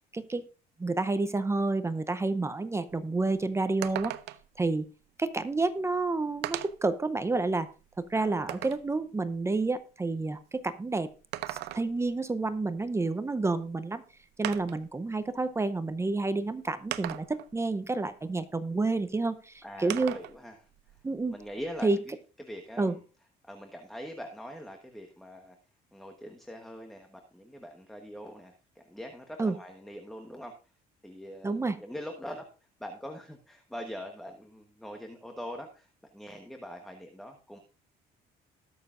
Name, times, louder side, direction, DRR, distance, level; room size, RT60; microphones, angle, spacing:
voice 1, 0.1-0.4 0.8-4.1 4.6-4.9 5.2-11.1 11.5-14.0 14.4-20.1 21.0-21.4 21.8-22.0 22.8-22.9 29.4-29.6 31.4-31.8, right 3 dB, 15° right, 13 dB, 0.7 m, -29 dB
sound 1, 2.9-3.0 3.3-3.4 3.8-4.6 5.6-5.7 6.4-6.9 7.5-8.9 11.1-12.1 13.6-13.7 14.4-14.9 15.9-16.0 16.9-17.5 19.9-20.4 20.7-21.8, right 15 dB, 85° right, 0.6 m, -38 dB
voice 2, 8.1-8.6 19.6-21.0 21.3-22.1 22.4-23.0 23.4-25.6 25.9-30.6 31.0-32.5 32.8-37.6, equal, ahead, 4 dB, 1.2 m, -43 dB
20.0 x 6.7 x 2.5 m, 0.35 s
cardioid pair, 110°, 17 cm